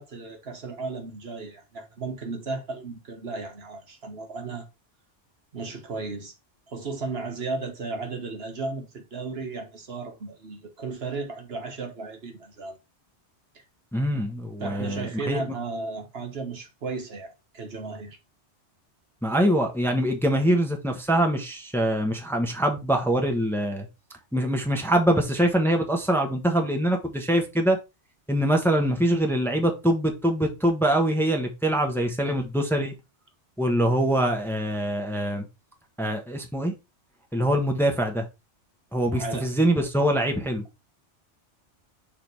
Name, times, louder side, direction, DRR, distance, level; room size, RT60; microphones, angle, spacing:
voice 1, 0.0-4.7 5.5-6.3 6.7-12.8 14.6-18.2 39.1-39.5, right 3 dB, 60° right, 1.5 m, -35 dB
voice 2, 13.9-15.4 19.2-23.8 24.3-27.8 28.3-32.9 33.6-35.4 36.0-36.7 37.3-38.3 38.9-40.6, right 1 dB, ahead, 1.1 m, -24 dB
6.7 x 3.6 x 4.6 m
omnidirectional pair, 1.2 m